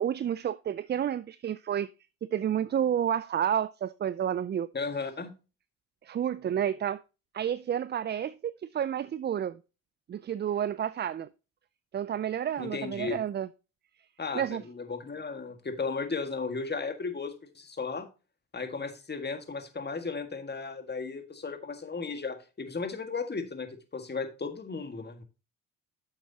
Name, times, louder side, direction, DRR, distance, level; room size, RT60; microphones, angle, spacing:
voice 1, 0.0-1.9 2.3-4.7 6.0-7.0 7.3-9.6 10.1-11.3 11.9-13.5 14.3-14.6, right 9 dB, 30° right, 0.4 m, -30 dB
voice 2, 4.7-5.3 12.6-13.2 14.2-18.1 18.5-25.2, left 4 dB, 25° left, 1.7 m, -35 dB
9.8 x 7.2 x 2.8 m
hypercardioid pair, 55°, 36 cm